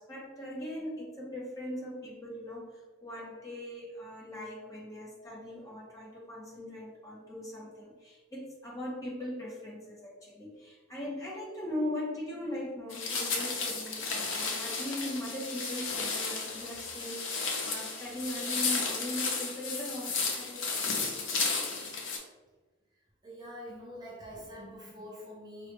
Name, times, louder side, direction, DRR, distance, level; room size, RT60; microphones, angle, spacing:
voice 1, 0.0-21.9, left 1 dB, 15° left, -5 dB, 0.9 m, -40 dB
sound 1, 12.9-22.2, left 4 dB, 75° left, 0.7 m, -33 dB
voice 2, 23.2-25.7, equal, 20° right, -4 dB, 0.5 m, -45 dB
4.6 x 2.1 x 3.2 m, 1.3 s
head